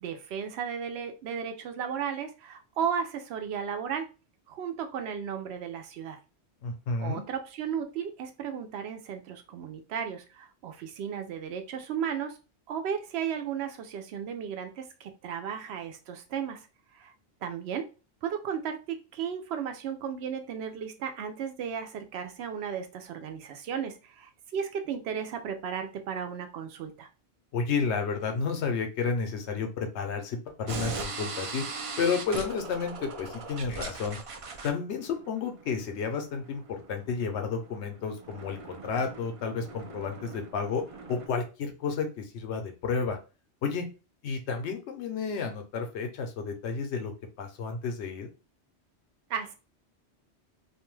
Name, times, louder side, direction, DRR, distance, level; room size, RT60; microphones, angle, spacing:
voice 1, 0.0-4.1 4.5-6.2 7.0-12.4 12.7-16.6 16.9-17.1 17.4-17.9 18.2-27.1 49.3-49.5, right 7 dB, 75° right, 6 dB, 0.8 m, -34 dB
voice 2, 6.6-7.2 27.5-31.6 32.0-34.2 34.6-40.8 41.1-43.2 43.6-43.9 44.2-47.1 47.4-48.3, left 5 dB, 85° left, 5 dB, 1.0 m, -31 dB
sound 1, 30.7-41.3, right 4 dB, 55° right, 0.4 m, -41 dB
2.6 x 2.2 x 3.1 m, 0.32 s
omnidirectional pair, 1.1 m